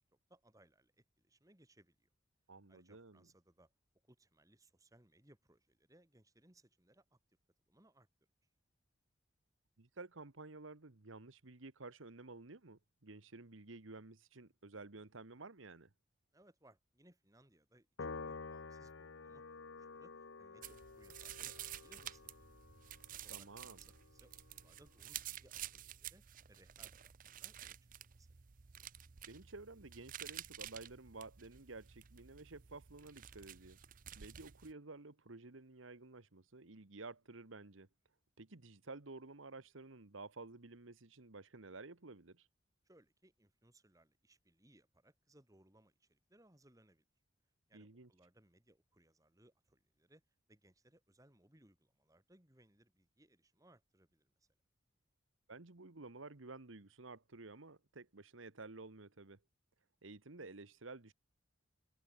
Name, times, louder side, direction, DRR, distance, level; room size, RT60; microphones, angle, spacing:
voice 1, 0.0-2.1 2.7-3.7 4.0-7.2 7.7-8.1 16.3-22.5 23.2-27.8 28.2-28.3 42.8-47.0 47.7-50.2 50.5-54.5, right 1 dB, 15° right, 2.6 m, -68 dB
voice 2, 2.5-3.3 9.8-15.9 23.3-23.8 29.3-33.8 34.1-37.9 38.4-42.5 47.7-48.1 55.5-59.4 60.0-61.1, right 3 dB, 80° right, 1.4 m, -52 dB
Piano, 18.0-24.6, left 4 dB, 75° left, 0.8 m, -51 dB
sound 1, 20.6-34.7, right 11 dB, 45° right, 0.6 m, -51 dB
head